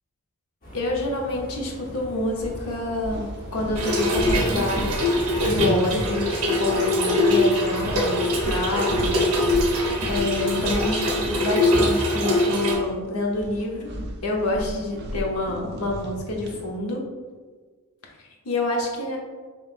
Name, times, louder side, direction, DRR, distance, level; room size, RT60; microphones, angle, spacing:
sound 1, 0.6-10.7, equal, 40° left, 1.1 m, -42 dB
voice 1, 0.7-5.1 5.5-13.9 14.2-17.0 18.2-19.2, left 2 dB, 80° left, -1 dB, 0.9 m, -28 dB
sound 2, 1.7-1.9 2.3-6.8 7.1-7.3 7.8-12.9 13.2-16.7, equal, 50° right, 0.5 m, -34 dB
Trickle dribble / Fill (with liquid), 3.8-12.8, left 1 dB, 75° right, 0.9 m, -23 dB
5.4 x 3.2 x 2.5 m, 1.5 s
head